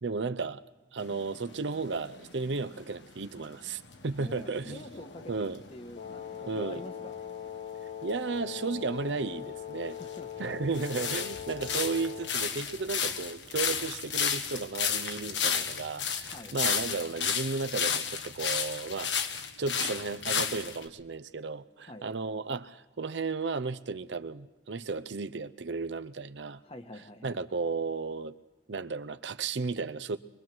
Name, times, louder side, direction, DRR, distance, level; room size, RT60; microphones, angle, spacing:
voice 1, 0.0-0.6 0.9-4.8 5.3-5.6 6.5-6.8 8.0-10.0 10.4-26.6 27.2-28.4 28.7-30.2, right 4 dB, 80° right, 0.7 m, -34 dB
sound 1, 1.0-7.1 8.7-8.8 9.6-20.9, left 7 dB, 85° left, 1.5 m, -33 dB
voice 2, 4.2-7.2 9.9-10.3 16.2-16.5 21.8-22.1 26.6-27.4, left 1 dB, 35° left, 1.5 m, -46 dB
Wind instrument woodwind instrument, 6.0-12.4, left 10 dB, 50° left, 1.3 m, -41 dB
24.0 x 22.5 x 6.2 m
head